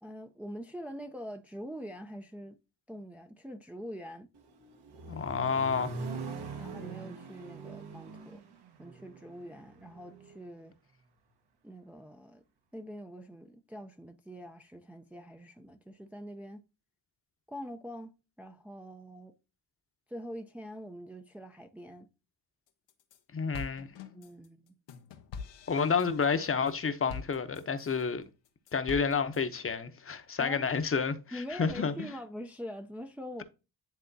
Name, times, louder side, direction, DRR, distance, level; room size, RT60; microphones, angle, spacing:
voice 1, 0.0-2.6 2.9-4.3 6.6-8.4 8.8-10.7 11.6-12.4 12.7-16.6 17.5-19.3 20.1-22.1 24.1-24.8 30.4-30.7 31.3-33.4, equal, 5° right, 0.5 m, -44 dB
Accelerating revving vroom, 4.3-10.4, right 3 dB, 65° right, 1.4 m, -43 dB
voice 2, 5.1-5.9 23.3-23.9 25.7-28.2 28.7-31.9, left 5 dB, 30° left, 0.9 m, -30 dB
sound 1, 22.7-23.2 23.5-28.0 28.5-29.4, left 5 dB, 90° left, 1.0 m, -45 dB
10.0 x 3.5 x 2.7 m
cardioid pair, 90°, 42 cm